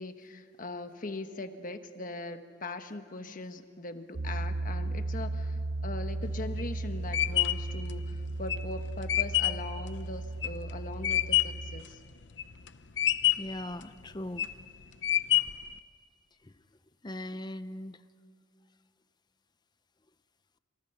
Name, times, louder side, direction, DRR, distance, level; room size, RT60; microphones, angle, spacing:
voice 1, 0.0-12.0, left 2 dB, 45° left, 8 dB, 1.2 m, -40 dB
Piano, 4.1-11.8, right 2 dB, 50° right, 0.8 m, -35 dB
sound 1, 6.2-11.7 12.1-12.7 13.0-13.6 14.1-14.6 15.0-15.7, left 13 dB, 70° left, 0.8 m, -27 dB
voice 2, 13.3-14.5 16.4-16.5 17.0-18.0, left 1 dB, 25° left, 12 dB, 0.7 m, -39 dB
27.5 x 27.5 x 5.5 m, 2.2 s
head